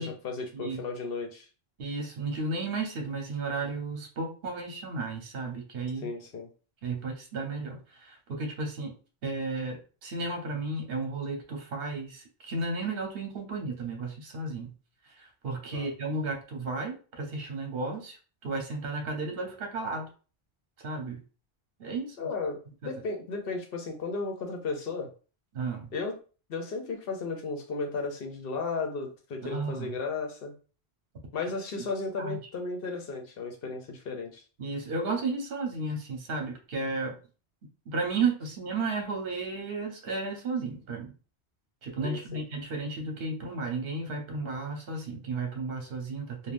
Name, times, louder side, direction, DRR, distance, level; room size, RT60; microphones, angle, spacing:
voice 1, 0.0-1.5 6.0-6.5 15.7-15.9 22.2-25.1 25.9-26.2 26.5-30.5 31.3-34.4 42.0-42.4, left 3 dB, 65° left, 3 dB, 0.8 m, -34 dB
voice 2, 1.8-6.1 6.8-8.9 9.2-14.7 15.0-18.2 18.4-20.1 20.8-21.2 21.8-22.3 22.8-22.9 25.5-25.9 29.4-29.9 32.2-32.4 34.6-37.1 37.9-41.1 41.8-46.5, right 3 dB, 65° right, 3 dB, 1.0 m, -33 dB
3.3 x 2.2 x 2.5 m, 0.36 s
omnidirectional pair, 1.1 m